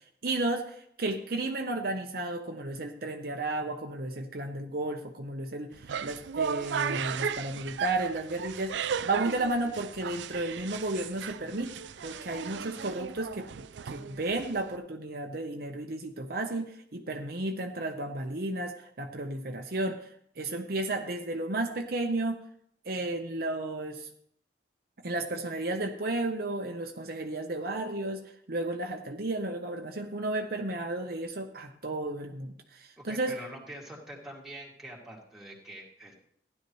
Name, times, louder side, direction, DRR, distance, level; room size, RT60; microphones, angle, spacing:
voice 1, 0.2-11.7 12.0-13.5 13.8-20.0 20.4-22.4 22.9-24.1 25.0-33.3, right 2 dB, 55° right, 3 dB, 0.9 m, -33 dB
sound 1, 5.7-14.8, right 7 dB, 90° right, 0.4 m, -36 dB
voice 2, 33.0-36.2, right 1 dB, ahead, -3 dB, 2.4 m, -45 dB
15.5 x 10.5 x 3.1 m, 0.66 s
head